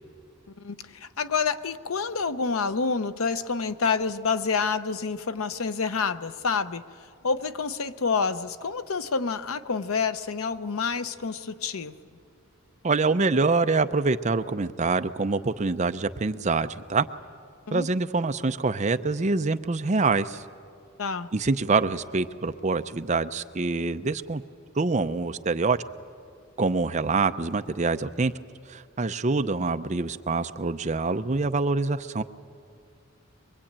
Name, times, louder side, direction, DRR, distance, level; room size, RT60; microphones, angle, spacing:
voice 1, 0.6-6.8 7.2-11.9 17.7-17.9 21.0-21.3, left 5 dB, 90° left, 0.8 m, -28 dB
voice 2, 12.8-17.1 17.7-20.4 21.3-24.4 24.8-25.8 26.6-28.3 28.7-32.2, right 3 dB, 35° right, 0.6 m, -25 dB
23.0 x 23.0 x 8.8 m
head